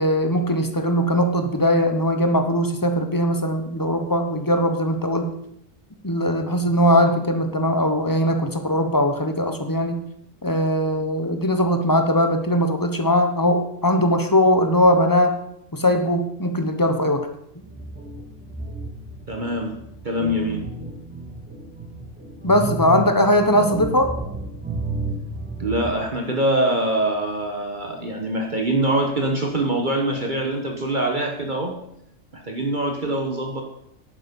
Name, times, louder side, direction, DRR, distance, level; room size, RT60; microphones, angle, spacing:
voice 1, 0.0-5.3 6.0-10.0 10.4-15.4 15.7-17.3 22.4-24.1, equal, 15° left, 6 dB, 1.1 m, -20 dB
sound 1, 17.6-25.9, right 2 dB, 5° right, 2.6 m, -32 dB
voice 2, 19.3-19.8 20.0-20.6 25.6-31.8 32.3-33.6, right 1 dB, 40° right, 1 dB, 1.4 m, -24 dB
11.0 x 9.1 x 5.4 m, 0.75 s
omnidirectional pair, 1.3 m